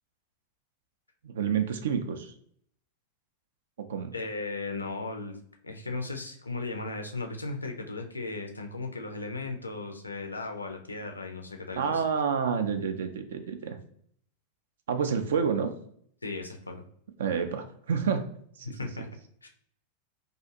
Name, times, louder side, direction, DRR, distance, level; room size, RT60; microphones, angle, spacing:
voice 1, 1.2-2.3 3.8-4.1 11.7-13.8 14.9-15.7 17.2-18.2 18.6-18.7, right 6 dB, 60° right, 7 dB, 0.3 m, -29 dB
voice 2, 4.1-12.0 16.2-16.8 18.7-19.1 19.4-19.5, left 3 dB, 80° left, 4 dB, 0.4 m, -36 dB
2.4 x 2.4 x 2.6 m, 0.63 s
figure-of-eight pair, 90°, 0 cm